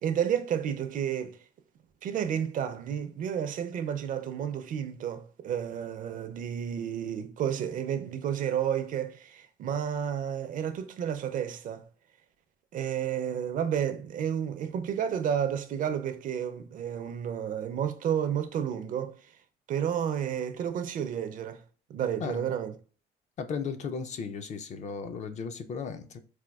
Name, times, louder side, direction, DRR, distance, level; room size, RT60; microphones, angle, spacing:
voice 1, 0.0-1.4 2.0-11.8 12.7-19.2 19.7-21.6 21.9-22.7, right 9 dB, 50° right, 0.4 m, -31 dB
voice 2, 23.4-26.2, left 5 dB, 45° left, 0.4 m, -35 dB
4.2 x 2.3 x 2.3 m
cardioid pair, 110°, 17 cm